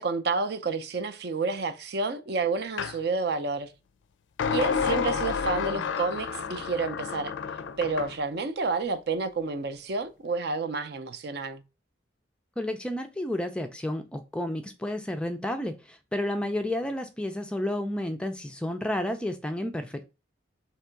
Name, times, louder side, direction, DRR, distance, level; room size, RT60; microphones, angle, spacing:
voice 1, 0.0-3.7 4.5-7.3 7.8-11.6, right 4 dB, 55° right, 0.5 m, -30 dB
sound 1, 2.8-3.0 4.4-8.2, left 6 dB, 75° left, 0.4 m, -30 dB
voice 2, 12.6-20.1, left 1 dB, 5° left, 0.3 m, -31 dB
3.6 x 2.9 x 4.4 m
head